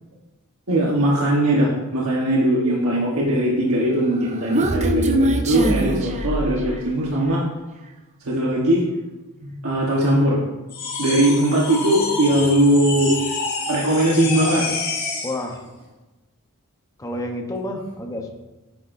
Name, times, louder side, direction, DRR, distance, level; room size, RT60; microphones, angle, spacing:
voice 1, 0.7-7.4 8.2-8.8 9.4-10.4 11.0-13.1 13.7-14.7, right 1 dB, 70° right, -3 dB, 1.3 m, -20 dB
Human voice, 4.0-7.0, right 1 dB, 30° right, 0.6 m, -23 dB
sound 1, 10.7-15.4, left 4 dB, 45° left, 2.6 m, -28 dB
voice 2, 15.2-15.6 17.0-18.3, left 1 dB, 15° left, 3 dB, 0.9 m, -29 dB
9.5 x 9.3 x 2.6 m, 1.1 s
head